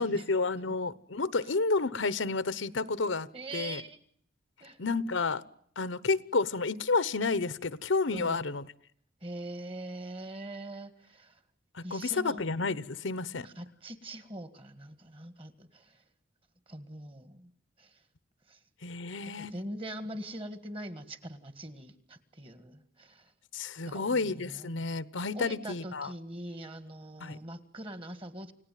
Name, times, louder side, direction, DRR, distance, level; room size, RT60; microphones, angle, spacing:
voice 1, 0.0-3.3 3.5-3.8 4.8-5.4 5.8-8.6 11.7-13.5 18.8-19.6 23.5-26.1 27.2-27.4, left 3 dB, 80° left, 1.0 m, -30 dB
voice 2, 3.3-4.0 4.6-4.8 8.1-8.4 9.2-11.4 11.8-12.4 13.4-16.0 16.7-17.5 17.8-18.0 18.5-18.6 19.2-23.3 23.8-24.7 25.3-28.5, right 1 dB, 25° right, 1.8 m, -43 dB
29.0 x 17.5 x 9.2 m
head